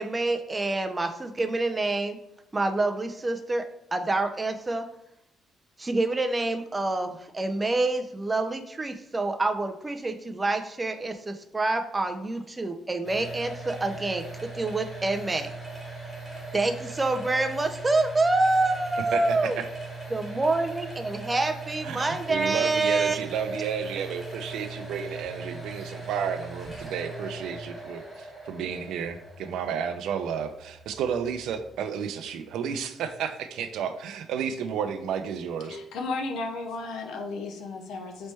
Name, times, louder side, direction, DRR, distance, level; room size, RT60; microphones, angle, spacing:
voice 1, 0.0-2.2 2.5-3.6 3.9-4.9 5.8-14.2 14.5-15.5 16.5-19.6 20.1-23.6, right 2 dB, 15° right, 6 dB, 0.4 m, -27 dB
sound 1, 13.0-31.8, right 2 dB, 10° left, 1.2 m, -40 dB
voice 2, 19.0-19.6 21.8-35.8, right 7 dB, 80° right, 8 dB, 0.4 m, -32 dB
voice 3, 35.7-38.3, left 3 dB, 80° left, 4 dB, 0.6 m, -34 dB
4.1 x 3.2 x 3.2 m, 0.83 s
cardioid pair, 155°, 0 cm